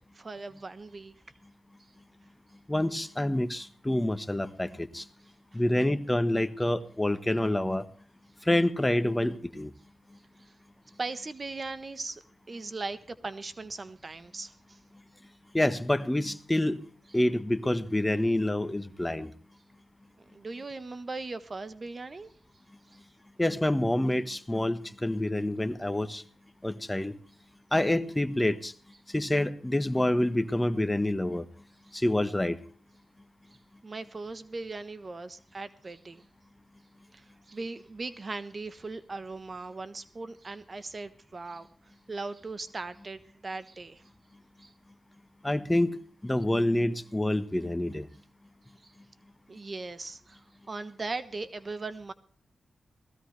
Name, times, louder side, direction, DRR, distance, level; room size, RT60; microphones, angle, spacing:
voice 1, 0.1-1.1 5.5-5.6 10.4-10.5 11.0-14.8 20.3-22.3 31.9-32.0 33.8-36.2 37.1-41.7 42.1-44.0 44.6-44.7 48.8-48.9 49.5-52.1, right 3 dB, 45° right, 13 dB, 1.1 m, -39 dB
voice 2, 2.7-5.1 5.5-7.8 8.4-9.7 15.5-16.8 17.1-19.3 23.4-26.2 26.6-27.2 27.7-28.7 29.1-31.4 31.9-32.6 45.4-46.0 46.2-48.1, left 1 dB, 15° left, 11 dB, 1.3 m, -27 dB
18.5 x 15.5 x 3.4 m, 0.43 s
cardioid pair, 55°, 0 cm